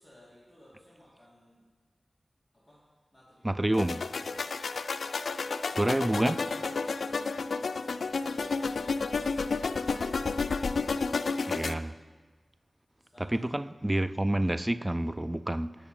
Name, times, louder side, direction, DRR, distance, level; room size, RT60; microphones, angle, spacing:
voice 1, 0.0-1.6 2.5-2.8 3.1-4.5 8.0-11.5 13.0-13.6, equal, 5° left, 2.4 m, -57 dB
voice 2, 3.4-4.0 5.7-6.4 11.5-11.9 13.3-15.8, right 1 dB, 15° right, 0.3 m, -28 dB
sound 1, 3.7-11.7, left 4 dB, 80° left, 0.3 m, -31 dB
17.5 x 6.2 x 4.4 m
wide cardioid pair, 100°, 0 cm